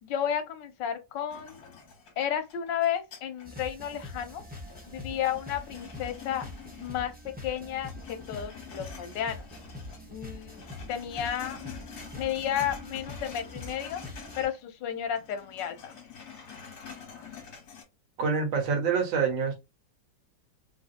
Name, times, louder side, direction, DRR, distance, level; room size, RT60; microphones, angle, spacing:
voice 1, 0.0-1.6 2.2-4.4 4.9-6.5 6.8-9.5 10.1-11.6 12.1-14.0 14.4-16.0, left 9 dB, 75° left, 1.3 m, -32 dB
sound 1, 1.3-3.6 4.0-7.2 7.5-10.0 10.3-14.6 14.9-17.8, left 7 dB, 60° left, 1.5 m, -47 dB
sound 2, 3.4-14.5, left 1 dB, 10° right, 0.5 m, -44 dB
voice 2, 18.2-19.6, right 5 dB, 85° right, 1.8 m, -26 dB
3.7 x 2.6 x 2.4 m
omnidirectional pair, 2.0 m